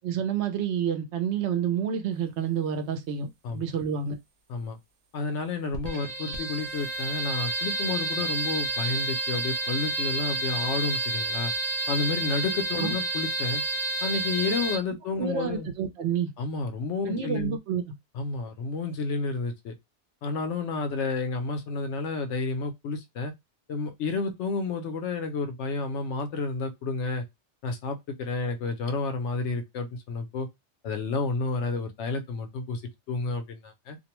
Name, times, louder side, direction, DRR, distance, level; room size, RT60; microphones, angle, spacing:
voice 1, 0.0-4.2 12.8-12.9 15.2-16.3 17.1-17.8, right 8 dB, 75° right, 0.9 m, -29 dB
voice 2, 5.1-11.5 11.9-13.6 14.0-15.7 16.4-17.6 18.1-19.7 20.2-23.3 23.7-27.2 27.6-30.5 30.8-32.8 33.1-34.0, left 4 dB, 80° left, 0.9 m, -30 dB
sound 1, 5.7-14.8, right 2 dB, 55° right, 0.4 m, -30 dB
2.5 x 2.1 x 2.9 m
omnidirectional pair, 1.2 m